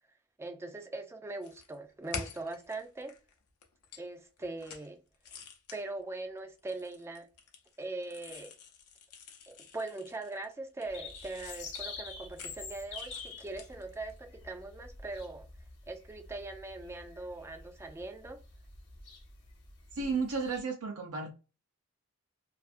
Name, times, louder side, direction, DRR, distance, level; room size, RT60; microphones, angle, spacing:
voice 1, 0.4-3.1 4.0-5.0 5.7-7.3 7.8-8.5 9.5-15.5 15.9-18.4, right 2 dB, 10° right, 0.3 m, -41 dB
sound 1, 1.4-3.3 3.6-4.1 4.4-4.9 5.1-5.8 6.6-10.5 10.8-14.2, left 5 dB, 80° left, 0.6 m, -47 dB
sound 2, 10.8-20.6, left 4 dB, 50° left, 0.8 m, -47 dB
voice 2, 19.9-21.3, right 4 dB, 75° right, 0.5 m, -33 dB
2.4 x 2.4 x 2.5 m
head